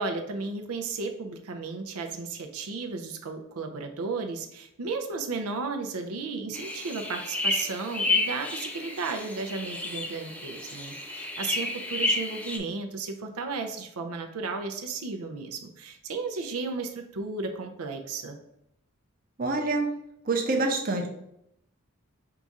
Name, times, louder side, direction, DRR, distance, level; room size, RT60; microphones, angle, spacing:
voice 1, 0.0-18.4, right 4 dB, 85° right, 4 dB, 0.5 m, -34 dB
sound 1, 6.5-12.6, left 2 dB, 5° left, 0.3 m, -31 dB
voice 2, 19.4-19.9 20.3-21.1, right 3 dB, 40° right, 1 dB, 0.6 m, -26 dB
4.7 x 2.4 x 4.0 m, 0.77 s
head